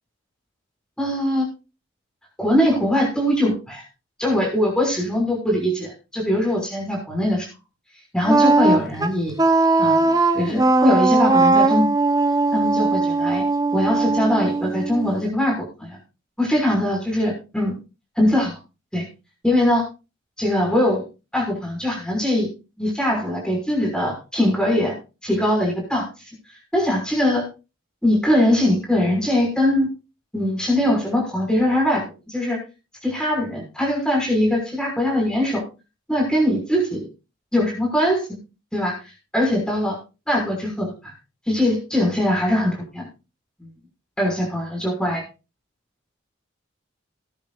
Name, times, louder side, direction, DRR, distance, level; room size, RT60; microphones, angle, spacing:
voice 1, 1.0-1.5 2.4-3.8 4.2-7.5 8.1-9.4 9.8-11.9 12.5-13.4 13.7-16.0 16.4-17.7 18.2-18.6 18.9-19.1 19.4-19.8 20.4-21.1 21.3-22.5 22.8-24.9 25.2-26.1 26.7-27.5 28.0-29.9 30.3-32.6 33.0-35.6 36.1-37.1 37.5-38.4 38.7-38.9 39.3-40.0 40.3-41.1 41.5-43.1 43.6-43.7 44.2-45.2, left 1 dB, 5° left, -1 dB, 6.0 m, -21 dB
Wind instrument woodwind instrument, 8.3-15.2, right 3 dB, 20° right, 1.0 m, -19 dB
20.0 x 10.5 x 2.6 m, 0.30 s
head